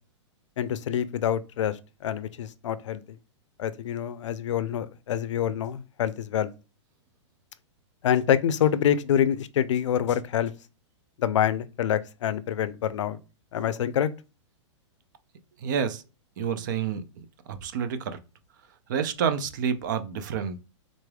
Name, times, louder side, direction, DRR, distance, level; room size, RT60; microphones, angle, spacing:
voice 1, 0.6-3.2 3.6-6.5 8.0-10.5 11.2-13.2 13.5-14.1, left 9 dB, 75° left, 0.5 m, -26 dB
voice 2, 15.6-16.0 16.4-18.2 18.9-20.6, right 7 dB, 40° right, 0.5 m, -29 dB
3.9 x 3.2 x 2.2 m
hypercardioid pair, 170°, 16 cm